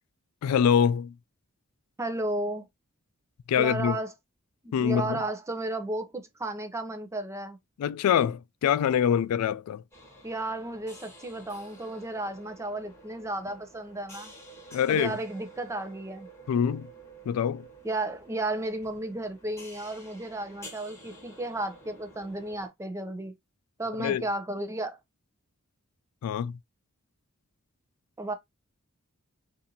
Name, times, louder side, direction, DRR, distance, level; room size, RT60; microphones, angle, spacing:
voice 1, 0.4-1.1 3.5-4.0 4.7-5.2 7.8-9.8 14.7-15.2 16.5-16.9 17.3-17.7 24.0-24.2 26.2-26.6, left 8 dB, 90° left, 0.3 m, -25 dB
voice 2, 2.0-2.7 3.6-4.1 4.6-7.6 10.2-14.3 14.9-16.3 17.8-23.3 23.8-25.0 28.2-28.3, right 2 dB, 15° right, 0.6 m, -33 dB
sound 1, 9.9-22.7, right 1 dB, 10° left, 1.3 m, -50 dB
4.1 x 2.6 x 2.7 m
head